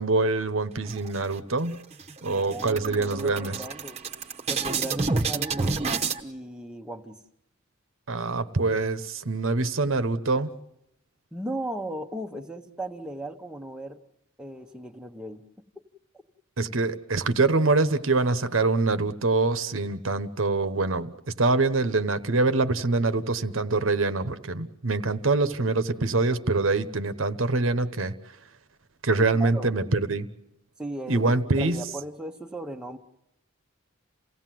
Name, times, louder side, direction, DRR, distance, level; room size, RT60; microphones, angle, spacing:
voice 1, 0.0-1.8 2.2-3.6 8.1-10.5 16.6-21.1 21.4-28.1 29.0-30.3 31.1-31.9, right 3 dB, 75° right, 11 dB, 1.0 m, -24 dB
sound 1, 0.9-1.6 2.0-2.1 2.4-6.2, right 4 dB, 30° right, 1.1 m, -29 dB
voice 2, 2.2-4.0 4.5-7.2 11.3-14.0 14.4-15.4 29.3-29.8 30.8-33.0, right 1 dB, 5° right, 3 dB, 1.0 m, -37 dB
28.5 x 17.0 x 7.7 m, 0.84 s
head